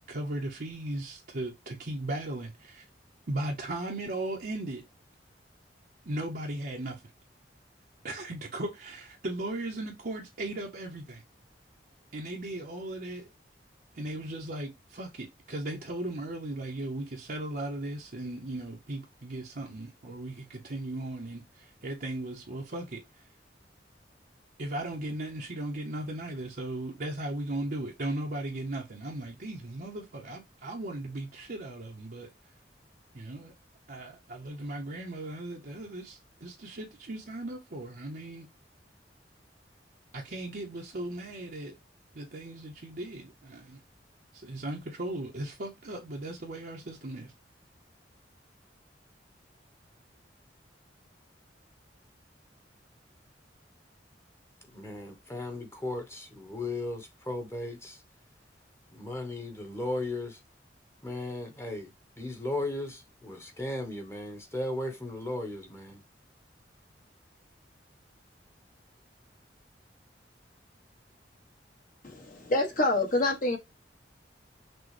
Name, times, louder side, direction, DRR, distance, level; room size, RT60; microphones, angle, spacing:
voice 1, 0.1-2.8 3.3-4.9 6.0-7.0 8.0-11.2 12.1-13.3 14.0-23.3 24.6-32.3 33.1-33.5 33.9-38.5 40.1-41.7 42.1-43.8 44.3-47.3, right 1 dB, 55° right, 0.8 m, -37 dB
voice 2, 54.7-58.0 58.9-60.4 61.0-61.9 62.2-66.0, left 2 dB, 15° left, 1.1 m, -36 dB
voice 3, 72.0-73.6, left 2 dB, 50° left, 1.4 m, -27 dB
6.1 x 2.3 x 3.2 m
head